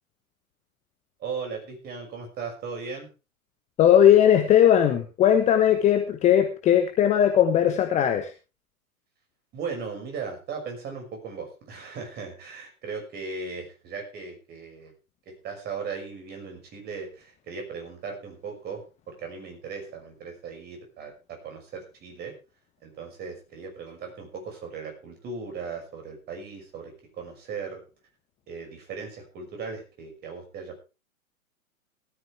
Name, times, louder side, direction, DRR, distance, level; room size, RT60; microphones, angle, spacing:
voice 1, 1.2-3.1 9.5-14.9 15.3-22.3 22.8-27.8 28.5-30.8, right 5 dB, 20° right, 3 dB, 6.0 m, -37 dB
voice 2, 3.8-8.3, left 10 dB, 15° left, 7 dB, 1.1 m, -19 dB
17.5 x 13.0 x 3.4 m, 0.31 s
figure-of-eight pair, 115°, 43 cm